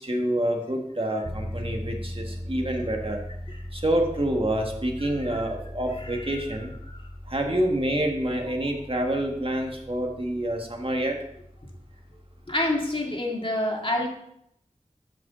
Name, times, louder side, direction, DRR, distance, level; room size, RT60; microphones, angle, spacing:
voice 1, 0.0-3.2 3.7-6.7 7.3-11.2, right 1 dB, 40° right, 2 dB, 1.6 m, -27 dB
sound 1, 1.2-13.1, equal, 70° right, 2.7 m, -40 dB
voice 2, 12.5-14.1, left 1 dB, 40° left, 0 dB, 2.0 m, -27 dB
8.0 x 5.1 x 6.8 m, 0.75 s
wide cardioid pair, 40°, 14 cm